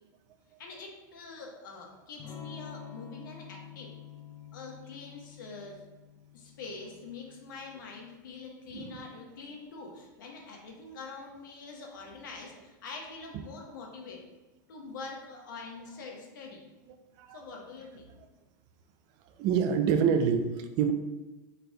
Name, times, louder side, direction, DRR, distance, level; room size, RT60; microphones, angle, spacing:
voice 1, 0.6-3.9 4.5-5.8 6.3-14.2 14.7-16.6 17.3-18.1, left 4 dB, 85° left, 0 dB, 1.1 m, -45 dB
Electric guitar / Strum, 2.2-7.9, left 9 dB, 30° left, 0.8 m, -48 dB
voice 2, 19.4-20.9, right 7 dB, 40° right, 8 dB, 0.5 m, -26 dB
5.0 x 4.2 x 2.2 m, 1.2 s
supercardioid pair, 145°, 10 cm